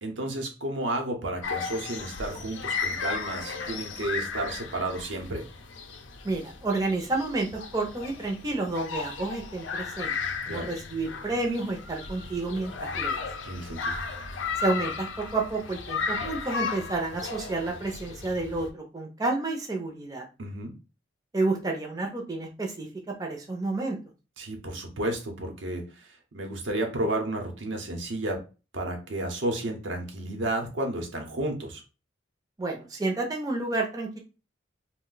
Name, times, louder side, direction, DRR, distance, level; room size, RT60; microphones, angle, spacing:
voice 1, 0.0-5.4 10.5-10.7 13.4-14.0 20.4-20.7 24.4-28.4 28.7-31.8, right 1 dB, 80° right, 3 dB, 0.8 m, -32 dB
sound 1, 1.4-18.7, left 5 dB, 85° left, 0.5 m, -35 dB
voice 2, 6.2-10.2 10.5-13.2 14.6-15.1 15.3-20.2 21.3-22.9 23.2-24.0 32.6-34.2, right 2 dB, 20° right, 0 dB, 0.5 m, -30 dB
2.5 x 2.1 x 3.8 m, 0.32 s
head